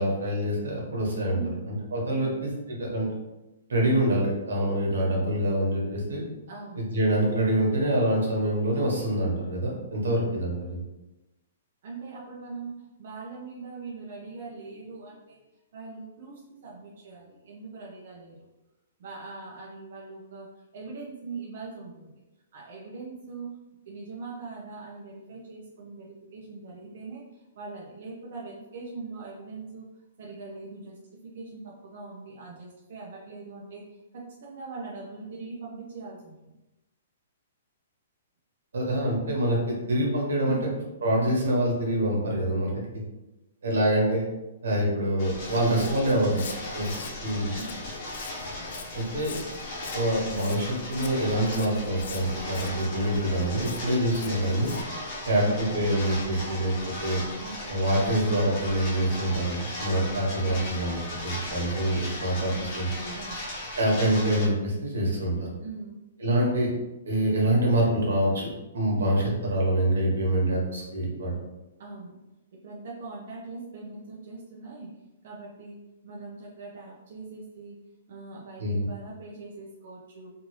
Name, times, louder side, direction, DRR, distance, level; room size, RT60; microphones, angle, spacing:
voice 1, 0.0-1.4 1.7-3.1 3.7-6.2 6.7-10.8 38.7-40.6 41.0-43.0 43.6-44.2 44.6-46.4 46.7-46.9 47.2-47.5 48.9-49.3 49.9-54.7 55.3-56.7 57.0-57.2 57.7-62.9 63.8-65.5 66.2-66.7 67.0-71.3 78.6-78.9, right 1 dB, 85° right, -2 dB, 1.3 m, -25 dB
voice 2, 1.3-1.7 2.2-2.4 6.5-6.9 10.0-10.2 11.8-15.4 15.7-18.5 19.0-22.2 22.5-23.5 23.9-29.9 30.2-31.0 31.2-33.8 34.1-36.6 40.4-40.7 45.5-46.7 47.5-47.8 54.4-54.7 55.4-55.7 57.4-57.7 60.4-60.7 62.5-62.8 63.1-63.5 65.6-66.0 71.8-72.2 72.5-74.9 75.2-75.8 76.0-77.8 78.1-80.3, right 3 dB, 50° right, -5 dB, 0.7 m, -41 dB
sound 1, 45.2-64.5, left 1 dB, 30° left, 1.0 m, -37 dB
Walk footsteps, 45.4-54.8, left 5 dB, 60° left, 0.4 m, -44 dB
3.4 x 2.6 x 3.1 m, 1.0 s
hypercardioid pair, 170°, 0 cm